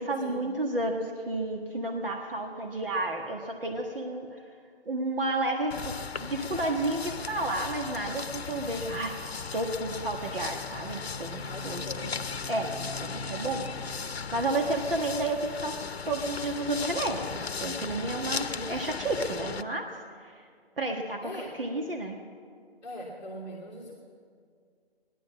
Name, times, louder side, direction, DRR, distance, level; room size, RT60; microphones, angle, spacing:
voice 1, 0.0-4.4 4.8-9.2 9.5-11.8 12.5-13.8 14.3-15.8 16.0-19.9 20.2-20.5 20.8-22.2, right 2 dB, 60° right, 2 dB, 1.7 m, -31 dB
sound 1, 5.7-19.6, left 5 dB, 75° left, 0.7 m, -37 dB
voice 2, 11.5-12.2 18.5-18.7 21.2-21.5 22.8-23.9, equal, 5° left, -7 dB, 1.3 m, -41 dB
18.0 x 11.0 x 7.3 m, 2.1 s
figure-of-eight pair, 155°, 31 cm